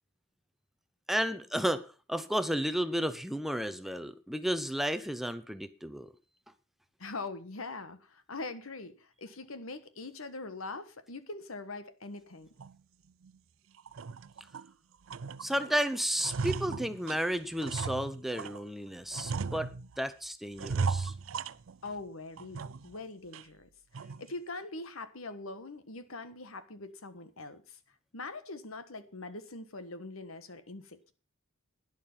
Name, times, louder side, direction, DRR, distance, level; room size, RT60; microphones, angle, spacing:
voice 1, 1.1-6.1 15.4-21.1, equal, ahead, 0.7 m, -32 dB
voice 2, 7.0-12.5 21.8-23.7 24.2-27.8 28.1-31.1, left 3 dB, 80° left, 1.4 m, -42 dB
sound 1, 12.6-12.8 13.2-13.4 13.8-14.7 15.1-15.7 16.0-18.6 19.1-20.1 20.6-22.0 22.4-23.0 23.3-23.4 23.9-24.3, right 4 dB, 70° right, 0.5 m, -36 dB
11.5 x 10.5 x 5.6 m
head